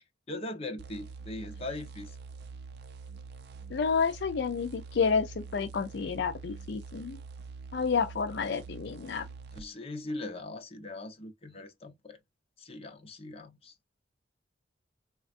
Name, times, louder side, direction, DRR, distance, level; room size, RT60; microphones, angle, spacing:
voice 1, 0.3-2.2 9.5-12.2 12.6-13.7, left 2 dB, 35° left, 0.8 m, -40 dB
sound 1, 0.8-9.7, right 4 dB, 60° right, 0.5 m, -46 dB
voice 2, 3.7-7.2 7.7-9.3, left 5 dB, 65° left, 0.4 m, -30 dB
4.1 x 2.4 x 2.4 m
head